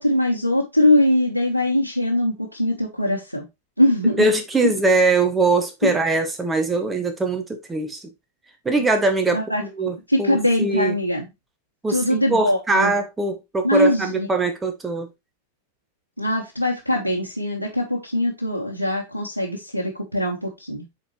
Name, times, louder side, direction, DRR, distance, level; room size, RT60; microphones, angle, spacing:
voice 1, 0.0-3.5 3.8-4.3 4.6-4.7 5.8-5.9 8.8-8.9 9.3-9.6 10.1-11.2 11.9-12.9 13.6-14.3 16.2-20.9, left 1 dB, 85° right, 1.2 m, -21 dB
voice 2, 4.0-8.0 8.6-10.9 11.8-15.1, right 2 dB, 15° right, 1.0 m, -22 dB
7.6 x 4.4 x 3.1 m
figure-of-eight pair, 90°, 0 cm